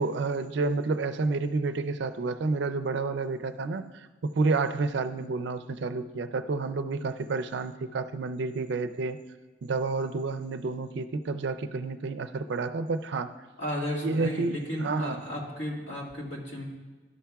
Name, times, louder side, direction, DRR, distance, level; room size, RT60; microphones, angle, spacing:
voice 1, 0.0-9.2 9.6-13.3 14.0-15.2, right 3 dB, 65° right, 9 dB, 0.4 m, -30 dB
voice 2, 13.6-16.6, equal, 70° left, -3 dB, 1.9 m, -34 dB
12.5 x 5.6 x 2.3 m, 1.3 s
head